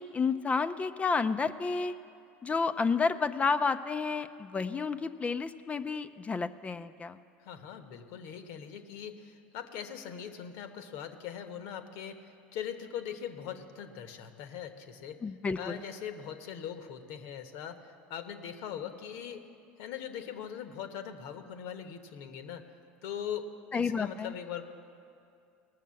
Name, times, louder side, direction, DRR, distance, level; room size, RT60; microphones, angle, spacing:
voice 1, 0.0-1.9 2.4-7.2 15.2-15.8 23.7-24.3, left 5 dB, 25° left, 11 dB, 0.5 m, -30 dB
voice 2, 7.4-15.2 15.6-19.5 19.8-22.6 23.0-24.6, left 8 dB, 70° left, 8 dB, 1.1 m, -41 dB
18.0 x 6.6 x 7.6 m, 2.5 s
hypercardioid pair, 90°, 5 cm